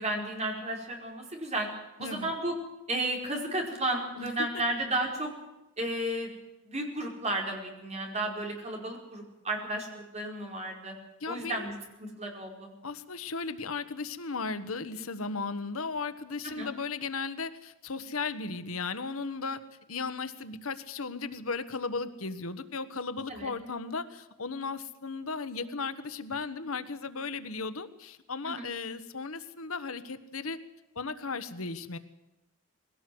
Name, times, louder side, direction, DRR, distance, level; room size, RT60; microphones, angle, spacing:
voice 1, 0.0-1.7 2.0-2.5 2.9-5.3 5.8-6.3 6.6-10.9 11.3-11.7 12.0-12.7 16.6-16.7 23.3-23.5 28.5-28.6, right 1 dB, 30° right, 1 dB, 5.0 m, -33 dB
voice 2, 2.0-2.3 4.2-4.6 11.2-11.7 12.8-19.6 19.9-30.6 30.9-32.0, left 4 dB, 85° left, 12 dB, 1.3 m, -36 dB
21.5 x 17.5 x 7.9 m, 0.98 s
head